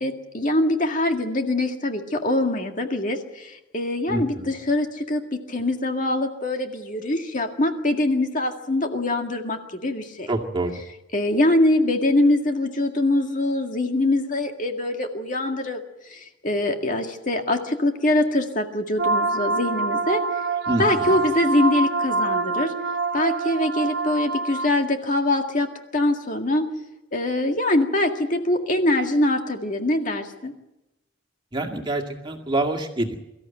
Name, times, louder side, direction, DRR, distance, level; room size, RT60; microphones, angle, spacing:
voice 1, 0.0-10.3 11.1-15.8 16.1-20.4 20.8-22.7 23.1-26.7 27.1-30.5, left 1 dB, 40° left, 4 dB, 2.0 m, -23 dB
voice 2, 4.1-4.5 10.3-10.7 20.7-21.2 31.5-33.2, right 1 dB, 25° right, 2 dB, 2.1 m, -26 dB
sound 1, 19.0-24.7, right 3 dB, 55° right, 1.0 m, -25 dB
23.5 x 14.5 x 9.0 m, 0.96 s
head